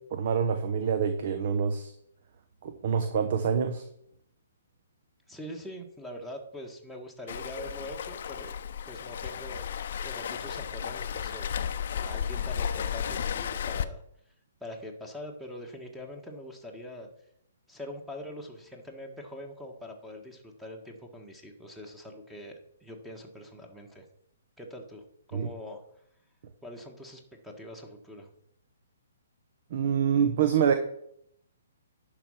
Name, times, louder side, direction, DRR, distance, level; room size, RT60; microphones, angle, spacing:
voice 1, 0.1-1.9 2.6-3.8 25.3-25.5 29.7-30.7, right 7 dB, 50° right, 8 dB, 0.9 m, -26 dB
voice 2, 5.3-8.5 8.8-9.6 10.0-11.5 12.0-14.0 14.6-17.1 17.7-24.1 24.6-25.8 26.6-28.3, left 1 dB, 5° right, 3 dB, 1.5 m, -43 dB
Waves surf, 7.3-13.8, left 8 dB, 55° left, 0.7 m, -33 dB
11.0 x 4.9 x 5.7 m, 0.72 s
figure-of-eight pair, 130°, 0 cm